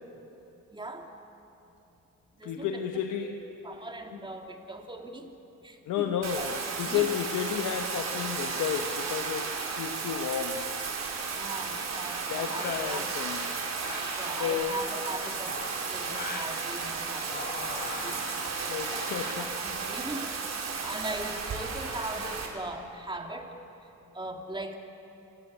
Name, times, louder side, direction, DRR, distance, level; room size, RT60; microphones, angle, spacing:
voice 1, 0.7-1.1 2.4-2.9 3.2-3.3 3.6-5.3 5.6-6.5 6.8-7.1 11.3-13.1 14.2-15.6 15.9-18.2 19.4-23.6 24.0-24.8, right 2 dB, 15° right, 3 dB, 2.5 m, -40 dB
voice 2, 2.4-3.4 5.9-6.5 6.8-10.6 11.3-11.4 12.3-13.4 14.4-14.8 18.7-19.5, left 9 dB, 85° left, 4 dB, 1.2 m, -32 dB
Bathtub (filling or washing), 6.2-22.5, right 5 dB, 60° right, 4.0 m, -34 dB
sound 1, 12.5-13.0 13.8-14.3 15.3-16.5 17.2-18.4 18.8-19.4, left 3 dB, 35° left, 3.6 m, -40 dB
27.0 x 16.5 x 8.4 m, 3.0 s
cardioid pair, 90°, 30 cm